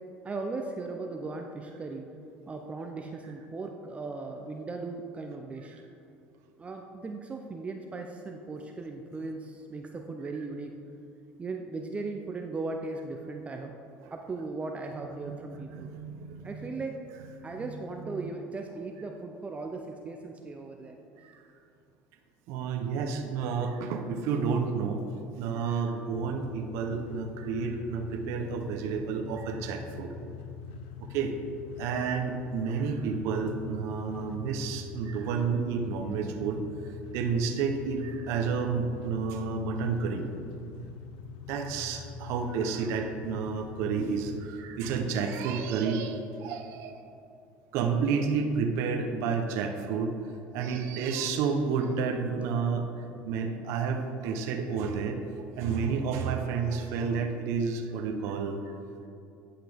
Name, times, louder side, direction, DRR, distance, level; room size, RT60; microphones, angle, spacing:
voice 1, 0.2-2.1 2.5-5.8 6.6-10.7 11.4-13.7 14.1-15.9 16.4-17.0 17.4-21.0, right 3 dB, 25° right, 3 dB, 0.6 m, -37 dB
voice 2, 15.3-16.7 17.5-17.7 18.1-18.3 21.2-21.3 22.5-25.0 25.4-30.1 31.1-31.3 31.8-36.6 37.1-40.3 41.5-47.0 47.7-50.1 50.5-52.8 53.2-55.2 55.6-58.6, right 5 dB, 70° right, 3 dB, 0.8 m, -30 dB
sound 1, 26.1-44.5, left 6 dB, 80° left, 0.5 m, -43 dB
9.7 x 5.7 x 3.5 m, 2.6 s
supercardioid pair, 90°, 5 cm